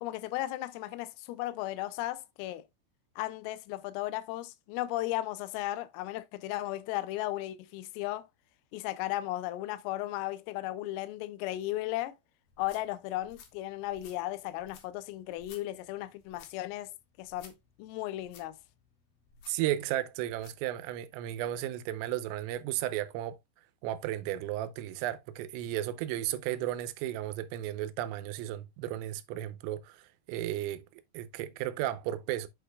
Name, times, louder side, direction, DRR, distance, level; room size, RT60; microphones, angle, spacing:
voice 1, 0.0-2.6 3.2-8.3 8.7-12.2 12.6-16.9 17.2-18.6, left 16 dB, 90° left, 3.4 m, -35 dB
sound 1, 12.5-20.7, left 5 dB, 60° left, 2.7 m, -57 dB
voice 2, 19.5-23.4 23.8-30.8 31.1-32.5, right 13 dB, 80° right, 3.2 m, -34 dB
8.6 x 6.6 x 2.3 m
omnidirectional pair, 5.9 m